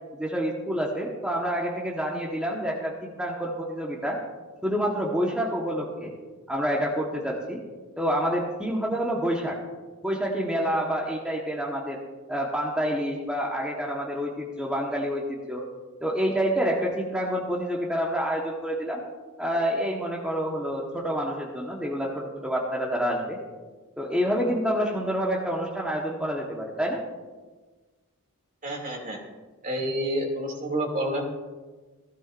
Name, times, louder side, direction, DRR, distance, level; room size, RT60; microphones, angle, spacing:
voice 1, 0.2-4.2 4.6-6.1 6.5-7.6 8.0-9.6 10.0-12.0 12.3-15.6 16.0-19.0 19.4-23.4 24.0-27.0, equal, 5° right, -3 dB, 1.3 m, -28 dB
voice 2, 28.6-29.2 29.6-31.2, right 1 dB, 40° right, 0 dB, 2.7 m, -29 dB
16.0 x 15.5 x 2.6 m, 1.3 s
head